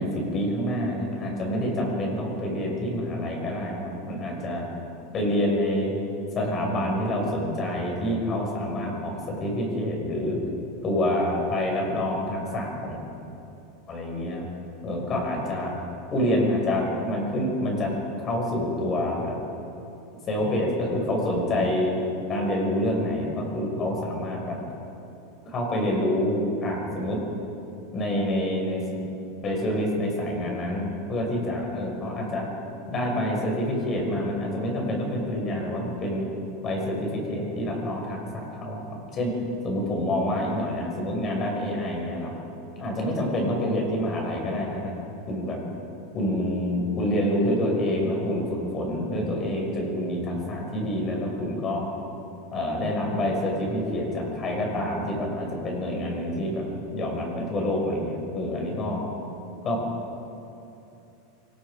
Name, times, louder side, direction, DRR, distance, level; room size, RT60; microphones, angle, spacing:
voice 1, 0.0-4.6 5.1-5.9 6.4-9.1 9.4-10.4 10.8-13.0 13.9-14.5 14.8-15.8 16.1-17.9 18.2-19.3 20.3-22.0 22.3-24.6 25.4-27.2 27.9-28.8 29.4-32.5 32.9-36.3 36.6-38.8 39.1-39.3 39.6-42.3 42.8-44.9 45.3-45.6 46.1-48.5 48.7-51.9 52.5-56.7 56.9-59.0 59.6-59.8, left 1 dB, 30° left, 0 dB, 6.1 m, -27 dB
27.0 x 20.0 x 5.1 m, 2.8 s
supercardioid pair, 135°, 0 cm